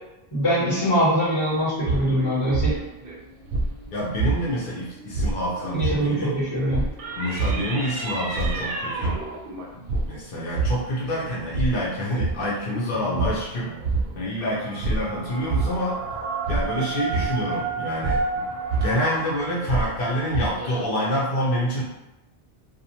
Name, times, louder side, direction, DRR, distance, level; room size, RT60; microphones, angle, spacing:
voice 1, 0.3-2.7 5.7-6.8, equal, 25° left, -11 dB, 1.4 m, -23 dB
sound 1, 1.5-4.7 5.0-20.8, right 3 dB, 65° right, 0.7 m, -28 dB
voice 2, 3.9-6.4 7.2-9.2 9.7-13.7 14.2-16.0 16.5-18.2 18.8-21.8, equal, 60° left, -6 dB, 0.8 m, -27 dB
2.5 x 2.1 x 2.8 m, 0.94 s
omnidirectional pair, 1.0 m